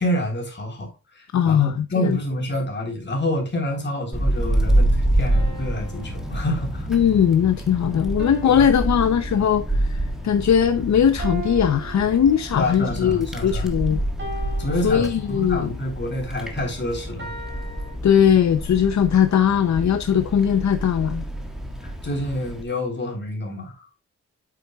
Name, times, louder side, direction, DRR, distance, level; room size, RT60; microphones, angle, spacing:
voice 1, 0.0-6.9 8.4-8.7 12.5-13.7 14.6-17.3 21.8-23.9, left 1 dB, 40° left, 3.6 m, -28 dB
voice 2, 1.3-2.2 6.9-14.0 14.8-15.7 18.0-21.2, left 8 dB, 70° left, 0.7 m, -19 dB
Wind, 4.1-22.6, right 1 dB, ahead, 1.6 m, -27 dB
sound 1, 5.3-7.1 8.2-9.8 11.2-12.9 14.2-15.7 17.2-18.0, right 2 dB, 40° right, 3.7 m, -39 dB
8.6 x 8.3 x 2.4 m
wide cardioid pair, 155°, 29 cm